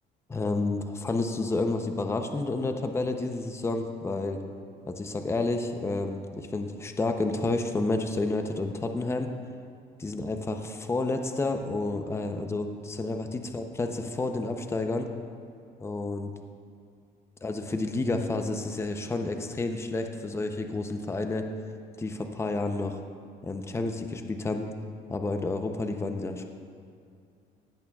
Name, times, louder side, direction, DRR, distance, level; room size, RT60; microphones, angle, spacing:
voice 1, 0.3-4.4 4.9-9.3 10.0-15.1 15.8-16.3 17.4-21.5 22.0-23.0 23.4-24.7 25.1-26.5, left 2 dB, 15° left, 5 dB, 0.6 m, -30 dB
17.0 x 8.5 x 2.4 m, 2.3 s
cardioid pair, 110°, 17 cm